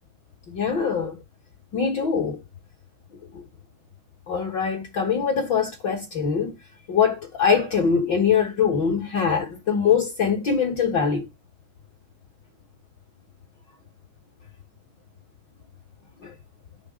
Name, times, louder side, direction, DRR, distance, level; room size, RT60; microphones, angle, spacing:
voice 1, 0.5-1.2 1.7-2.4 4.3-6.5 6.9-11.3 16.2-16.3, left 6 dB, 50° left, 1.4 m, -23 dB
6.5 x 3.5 x 6.0 m
omnidirectional pair, 3.5 m